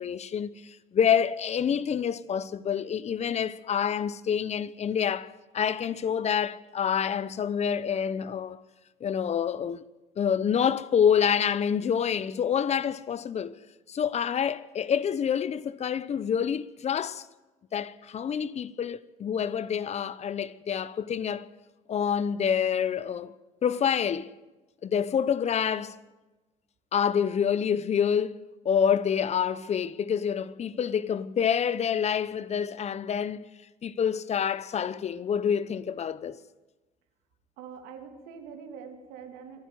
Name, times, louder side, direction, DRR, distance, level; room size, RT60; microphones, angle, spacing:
voice 1, 0.0-8.6 9.0-9.8 10.2-13.6 13.9-17.2 17.7-21.5 21.9-23.3 23.6-24.3 24.8-26.0 26.9-33.5 33.8-36.4, left 8 dB, 45° left, 0.9 m, -27 dB
voice 2, 37.6-39.7, right 6 dB, 85° right, 3.0 m, -44 dB
25.5 x 11.0 x 9.5 m
supercardioid pair, 85°, 16 cm